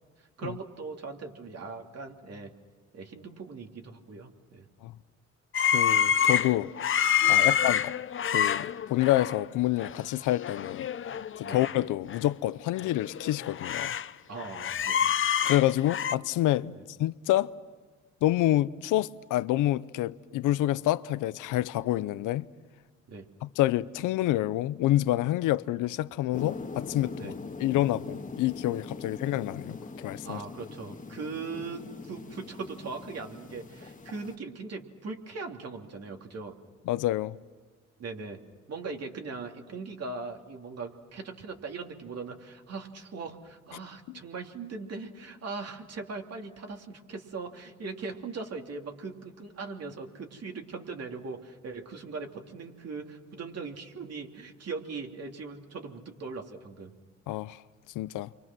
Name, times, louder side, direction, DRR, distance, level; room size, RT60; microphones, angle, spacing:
voice 1, 0.2-2.5 2.9-4.6 7.4-7.5 11.4-11.6 14.3-15.1 16.7-16.8 23.1-23.3 27.2-27.3 30.2-36.5 38.0-38.4 38.7-56.9, right 4 dB, 55° right, 3.0 m, -40 dB
sound 1, 5.5-9.4 9.8-10.0 10.3-11.8 12.1-12.2 12.8-14.1 14.4-16.2, left 8 dB, 40° left, 0.7 m, -27 dB
voice 2, 5.7-6.7 7.3-7.9 8.2-10.9 11.4-13.9 15.4-16.7 17.0-17.5 18.2-22.5 23.4-27.3 27.6-30.4 36.9-37.4 44.1-44.2 57.3-57.6 57.9-58.3, left 15 dB, 90° left, 0.7 m, -27 dB
sound 2, 26.3-34.4, left 4 dB, 25° left, 1.8 m, -42 dB
29.0 x 24.5 x 6.1 m
cardioid pair, 90°, 30 cm